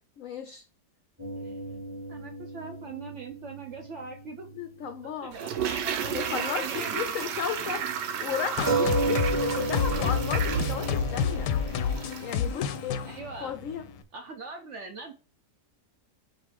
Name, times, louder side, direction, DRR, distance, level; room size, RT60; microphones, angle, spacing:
voice 1, 0.2-0.6 4.6-5.3 6.0-7.9 8.2-11.5 12.2-13.0 13.4-13.9, left 8 dB, 70° left, 0.8 m, -34 dB
sound 1, 1.2-5.1 5.3-5.4 8.7-13.9, right 3 dB, 10° right, 1.6 m, -33 dB
voice 2, 2.1-4.5 5.0-7.3 9.5-9.7 12.5-12.6 13.1-13.5 14.1-15.1, right 4 dB, 60° right, 0.8 m, -42 dB
Toilet flush, 5.3-12.4 12.7-12.8, right 8 dB, 90° right, 1.3 m, -33 dB
sound 2, 8.6-14.0, left 7 dB, 85° left, 1.2 m, -29 dB
5.5 x 2.6 x 3.2 m
omnidirectional pair, 1.8 m